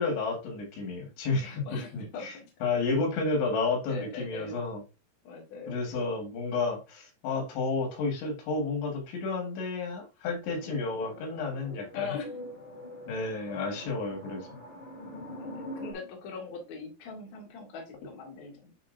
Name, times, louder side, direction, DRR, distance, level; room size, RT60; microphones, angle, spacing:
voice 1, 0.0-2.3 2.6-4.8 5.7-12.2 13.1-14.5, left 3 dB, 85° left, 4.2 m, -31 dB
voice 2, 1.4-2.5 3.9-4.6 5.2-5.8 11.9-12.4 15.0-18.7, left 5 dB, 50° left, 2.7 m, -41 dB
sound 1, 10.5-15.9, left 1 dB, 15° left, 1.8 m, -44 dB
10.0 x 3.7 x 2.6 m
omnidirectional pair, 5.0 m